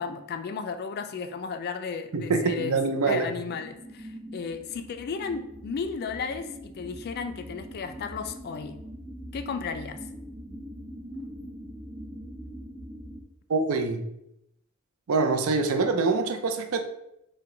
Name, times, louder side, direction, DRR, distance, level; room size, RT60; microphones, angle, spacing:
voice 1, 0.0-2.8 3.0-8.8 9.3-10.0, left 5 dB, 50° left, 9 dB, 0.3 m, -34 dB
voice 2, 2.1-3.3 13.5-14.0 15.1-16.8, right 4 dB, 80° right, 6 dB, 0.5 m, -25 dB
sound 1, 3.4-13.2, equal, 50° right, 1.3 m, -42 dB
4.6 x 2.2 x 3.7 m, 0.82 s
head